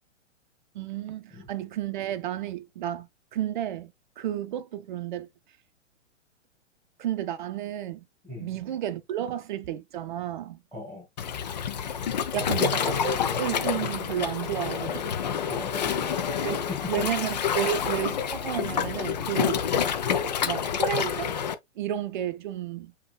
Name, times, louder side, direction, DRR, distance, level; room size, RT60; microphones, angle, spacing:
voice 1, 0.7-5.3 7.0-8.1 8.4-10.6 12.3-15.0 16.4-19.6 20.4-21.3 21.8-22.9, right 11 dB, 40° right, 0.6 m, -32 dB
voice 2, 10.7-11.1 15.5-16.1 16.7-17.1 17.5-17.7, left 2 dB, 5° left, 1.8 m, -38 dB
Waves surf, 11.2-21.5, left 8 dB, 35° left, 0.4 m, -28 dB
7.0 x 2.8 x 2.3 m
figure-of-eight pair, 115°, 38 cm